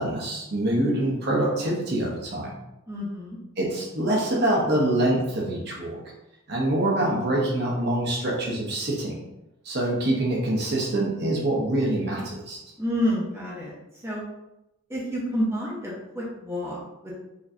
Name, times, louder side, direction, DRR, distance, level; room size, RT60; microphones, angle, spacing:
voice 1, 0.0-2.5 3.6-6.0 6.5-9.2 9.6-12.6, right 1 dB, 50° right, -3 dB, 0.9 m, -25 dB
voice 2, 2.9-3.4 12.8-13.7 14.0-14.2 14.9-17.1, equal, 10° right, -6 dB, 0.9 m, -29 dB
5.1 x 3.0 x 2.7 m, 0.92 s
head